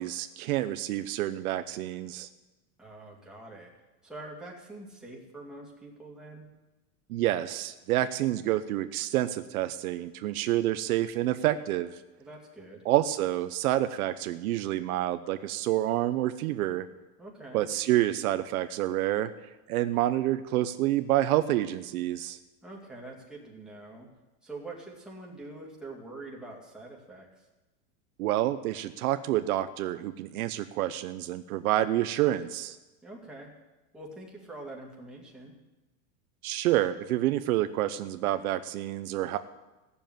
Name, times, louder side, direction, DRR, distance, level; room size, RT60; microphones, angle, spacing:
voice 1, 0.0-2.3 7.1-12.0 12.8-16.9 17.5-19.3 19.7-22.4 28.2-32.8 36.4-39.4, right 14 dB, 70° right, 10 dB, 0.8 m, -28 dB
voice 2, 2.8-3.7 4.0-6.5 12.2-12.8 17.2-17.7 22.6-24.1 24.4-27.5 33.0-33.5 33.9-35.5, right 2 dB, ahead, -3 dB, 2.2 m, -45 dB
16.0 x 7.1 x 9.2 m, 1.1 s
supercardioid pair, 165°, 46 cm